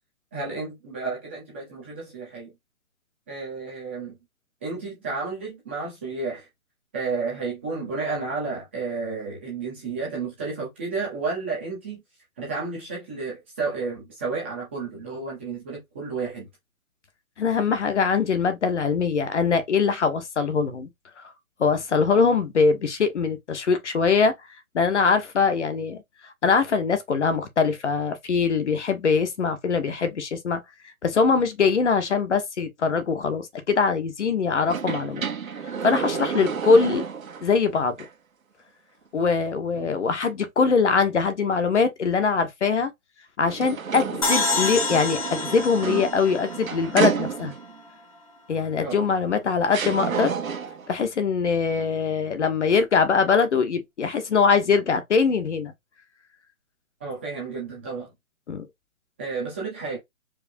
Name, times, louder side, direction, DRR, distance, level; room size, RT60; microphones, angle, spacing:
voice 1, 0.3-2.5 3.3-4.2 4.6-6.5 6.9-12.0 12.4-16.5 22.1-22.3 36.8-36.9 39.7-39.9 48.8-49.0 57.0-58.1 59.2-60.0, right 4 dB, 10° right, 0.9 m, -32 dB
voice 2, 17.4-20.9 21.2-21.3 21.6-24.3 24.7-26.0 26.4-30.6 31.0-35.3 35.8-37.0 37.4-37.9 39.1-42.9 43.4-47.5 48.5-50.3 50.9-55.7 58.5-58.7, left 5 dB, 50° left, 1.2 m, -22 dB
sound 1, 34.6-37.6 38.0-38.1 43.4-47.8 48.9-49.0 49.7-50.9, right 6 dB, 70° right, 1.4 m, -30 dB
sound 2, 44.2-47.5, left 3 dB, 25° left, 0.8 m, -28 dB
4.8 x 3.1 x 2.8 m
hypercardioid pair, 170°, 43 cm